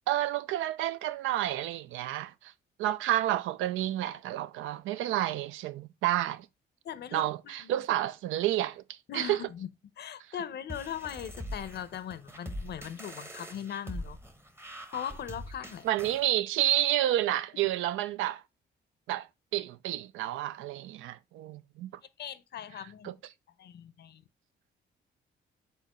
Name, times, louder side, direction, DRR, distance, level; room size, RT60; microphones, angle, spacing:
voice 1, 0.1-2.5 2.8-6.5 7.1-9.4 15.8-18.4 19.1-19.3 19.5-21.9 23.0-23.1, right 13 dB, 85° right, 0.4 m, -30 dB
voice 2, 6.8-7.8 9.1-9.7 10.0-14.2 14.9-15.9 22.2-23.1 23.6-24.2, left 9 dB, 55° left, 0.6 m, -39 dB
sound 1, 10.7-16.3, equal, 10° right, 0.8 m, -42 dB
4.5 x 4.0 x 2.9 m
cardioid pair, 90°, 20 cm